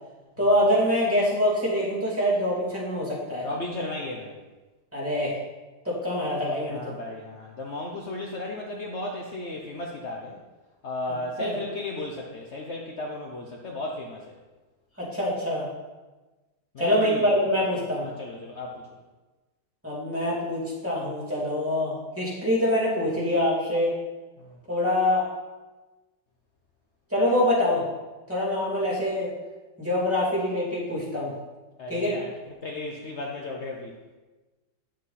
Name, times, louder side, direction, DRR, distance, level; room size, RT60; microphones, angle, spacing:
voice 1, 0.4-3.4 4.9-5.3 5.8-6.9 11.4-11.5 15.0-15.7 16.8-18.0 19.8-23.9 24.7-25.2 27.1-27.8 28.3-29.3 29.8-31.3 31.9-32.2, left 1 dB, 5° right, -5 dB, 2.7 m, -25 dB
voice 2, 3.4-4.4 6.7-10.4 10.8-14.4 16.7-17.3 18.0-18.9 24.4-24.6 31.8-32.3 32.6-33.9, left 2 dB, 65° left, 0 dB, 0.7 m, -35 dB
9.2 x 7.5 x 4.2 m, 1.2 s
omnidirectional pair, 2.4 m